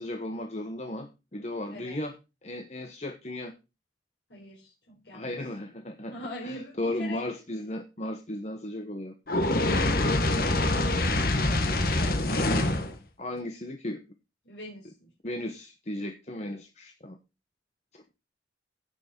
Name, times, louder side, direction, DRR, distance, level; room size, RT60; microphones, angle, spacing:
voice 1, 0.0-2.1 2.4-3.5 5.1-6.1 6.4-9.1 13.2-14.0 15.2-17.2 17.9-18.0, left 1 dB, 40° left, 5 dB, 1.1 m, -35 dB
voice 2, 4.3-5.3 6.1-7.2 9.7-12.9 14.4-15.1 16.3-16.6, left 1 dB, 75° left, -5 dB, 4.6 m, -43 dB
Fire, 9.3-12.9, left 2 dB, 55° left, 1.6 m, -25 dB
15.5 x 6.2 x 4.4 m, 0.27 s
head